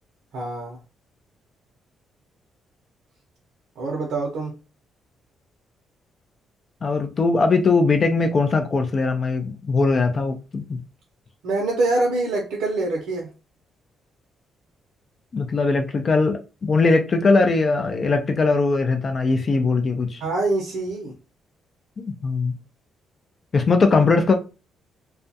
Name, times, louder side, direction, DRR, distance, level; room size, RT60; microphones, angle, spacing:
voice 1, 0.3-0.8 3.8-4.5 11.4-13.3 20.2-21.1, right 2 dB, 85° right, 0.7 m, -25 dB
voice 2, 6.8-10.8 15.3-20.2 22.0-22.6 23.5-24.3, left 3 dB, 40° left, 0.4 m, -20 dB
2.4 x 2.2 x 2.6 m
cardioid pair, 100°, 0 cm